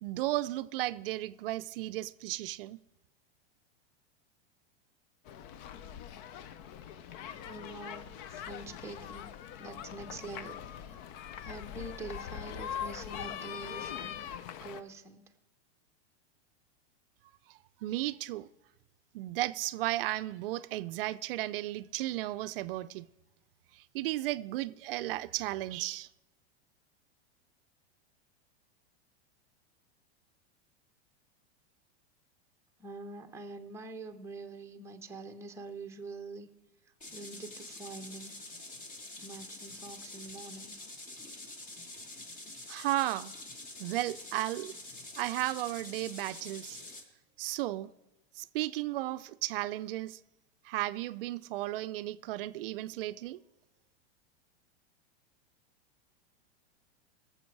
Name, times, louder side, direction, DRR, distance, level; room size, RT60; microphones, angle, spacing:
voice 1, 0.0-2.8 17.5-18.5 19.1-23.1 23.7-26.1 42.7-43.3 43.8-44.7 45.2-46.8 47.4-47.9 48.4-50.2 50.6-53.4, right 16 dB, 60° right, 0.5 m, -34 dB
sound 1, 5.3-14.8, left 9 dB, 45° left, 0.6 m, -42 dB
voice 2, 7.4-9.3 9.6-10.9 11.4-14.2 14.6-15.2 32.8-36.5 37.1-38.3 39.2-40.7, right 2 dB, 10° right, 0.8 m, -45 dB
sound 2, 37.0-47.0, left 2 dB, 25° left, 1.7 m, -46 dB
18.5 x 7.4 x 4.6 m
supercardioid pair, 135°, 32 cm